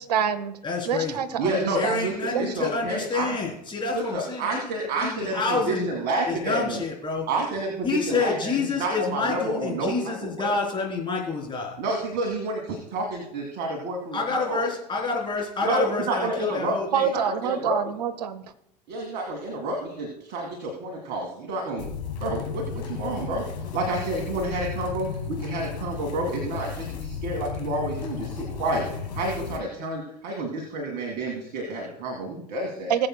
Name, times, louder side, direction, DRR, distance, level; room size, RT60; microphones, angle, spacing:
voice 1, 0.0-0.6 0.8-2.5 16.9-18.4 32.9-33.1, right 8 dB, 70° right, 13 dB, 0.8 m, -27 dB
voice 2, 0.6-1.2 1.7-5.9 6.3-7.3 7.8-11.8 14.1-17.1, left 4 dB, 25° left, -1 dB, 3.7 m, -28 dB
voice 3, 1.4-3.4 3.9-6.8 7.3-10.5 11.8-14.6 15.6-16.8 17.1-17.8 18.9-21.9 22.2-23.4 23.7-32.9, right 2 dB, 45° right, 1 dB, 2.1 m, -29 dB
sound 1, 21.8-29.6, left 6 dB, 70° left, 1.8 m, -34 dB
19.5 x 7.7 x 2.3 m, 0.78 s
figure-of-eight pair, 75°, 21 cm